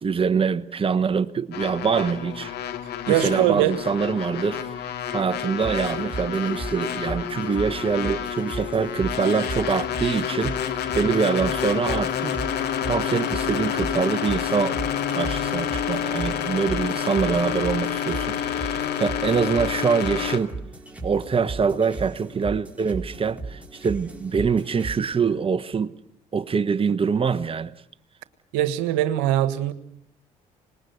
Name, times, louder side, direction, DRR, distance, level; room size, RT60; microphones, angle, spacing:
voice 1, 0.0-2.5 3.1-12.4 12.8-14.8 15.1-20.5 21.0-25.9 26.3-27.7, right 5 dB, 30° right, 1.1 m, -24 dB
sound 1, 1.5-20.4, left 9 dB, 60° left, 2.4 m, -29 dB
voice 2, 3.1-3.7 28.5-29.7, right 13 dB, 75° right, 1.5 m, -21 dB
sound 2, 5.6-25.0, right 3 dB, 5° right, 4.8 m, -37 dB
26.0 x 20.5 x 8.1 m
hypercardioid pair, 55°, 19 cm